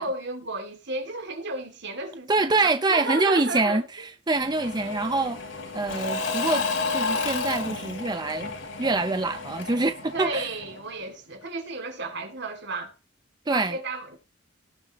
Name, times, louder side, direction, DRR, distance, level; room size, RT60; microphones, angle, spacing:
voice 1, 0.0-3.8 10.1-12.9 13.5-14.2, right 2 dB, 60° right, 2.7 m, -33 dB
voice 2, 2.3-5.4 5.7-6.6 6.9-8.5 8.8-10.5 13.5-13.8, right 3 dB, 20° right, 0.6 m, -25 dB
Engine / Mechanisms / Drill, 4.3-11.0, left 4 dB, 75° left, 3.9 m, -31 dB
18.5 x 7.2 x 3.1 m
head